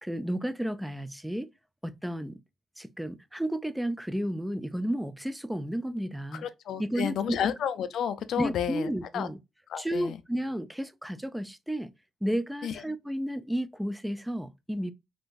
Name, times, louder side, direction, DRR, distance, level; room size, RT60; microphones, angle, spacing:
voice 1, 0.0-1.5 1.8-2.4 2.8-6.5 6.8-7.4 8.4-9.4 9.8-11.9 12.2-14.9, equal, 5° right, 0.3 m, -32 dB
voice 2, 6.3-9.3 9.7-10.2 12.6-12.8, left 8 dB, 70° left, 0.4 m, -31 dB
3.6 x 2.5 x 2.4 m
cardioid pair, 90°, 0 cm